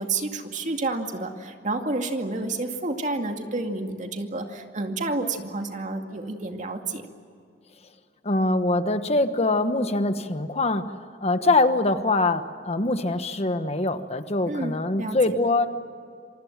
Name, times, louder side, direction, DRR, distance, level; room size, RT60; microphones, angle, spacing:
voice 1, 0.0-7.0 14.5-15.2, right 2 dB, 45° right, 4 dB, 2.3 m, -30 dB
voice 2, 8.2-10.9 11.2-15.7, left 2 dB, 35° left, 9 dB, 1.2 m, -23 dB
27.5 x 24.5 x 7.5 m, 2.3 s
head